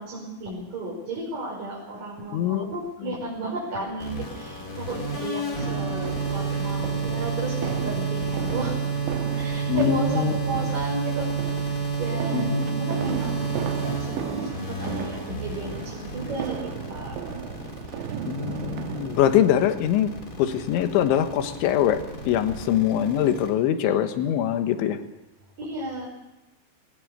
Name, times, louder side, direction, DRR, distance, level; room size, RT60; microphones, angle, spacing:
voice 1, 0.0-8.8 9.3-11.7 12.0-13.5 13.8-17.2 25.6-26.1, right 2 dB, 45° right, -5 dB, 6.5 m, -33 dB
voice 2, 2.3-2.7 3.0-3.1 9.7-10.4 10.6-10.7 12.3-12.7 18.3-20.1 20.4-25.0, left 10 dB, 75° left, 8 dB, 3.6 m, -23 dB
sound 1, 4.0-23.5, right 4 dB, 20° left, 2.8 m, -30 dB
sound 2, 5.6-19.5, right 9 dB, 75° right, 3.3 m, -36 dB
21.5 x 19.0 x 6.7 m, 1.0 s
omnidirectional pair, 5.7 m